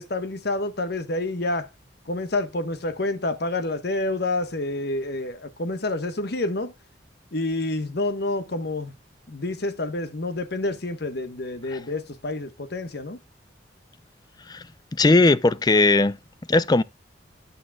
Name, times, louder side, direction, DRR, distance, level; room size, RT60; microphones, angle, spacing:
voice 1, 0.0-1.7 2.1-6.7 7.3-8.9 9.3-13.2, left 2 dB, 60° left, 1.1 m, -28 dB
voice 2, 14.9-16.2 16.5-16.8, left 2 dB, 20° left, 0.4 m, -18 dB
9.6 x 8.8 x 2.3 m
head